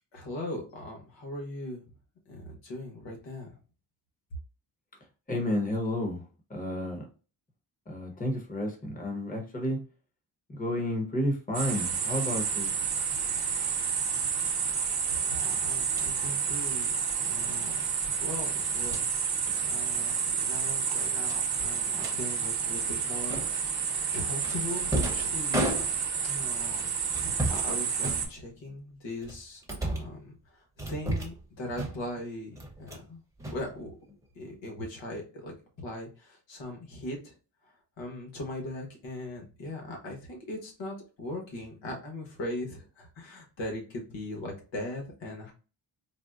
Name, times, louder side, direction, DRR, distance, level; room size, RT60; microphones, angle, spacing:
voice 1, 0.1-1.8 2.3-3.5 15.2-16.9 17.2-17.9 18.2-19.1 19.6-23.4 23.8-25.7 26.2-26.9 27.5-30.6 30.9-33.2 33.5-34.0 34.3-37.3 38.0-45.5, left 1 dB, 85° left, 1.3 m, -39 dB
voice 2, 5.3-6.2 6.5-7.0 7.9-9.8 10.5-12.7, left 1 dB, 20° left, 0.9 m, -31 dB
sound 1, 11.5-28.3, right 6 dB, 60° right, 0.8 m, -30 dB
sound 2, 15.8-16.1 17.6-17.8 18.7-19.1 19.5-19.7 19.9-20.2 20.4-20.5 21.2-22.2 23.3-23.7 24.4-26.3 27.1-27.7 28.0-28.7 29.2-30.2 30.8-31.4 31.7-32.2 32.6-33.1 33.4-34.2, right 1 dB, 5° right, 0.8 m, -34 dB
4.0 x 2.1 x 2.4 m
wide cardioid pair, 110°, 43 cm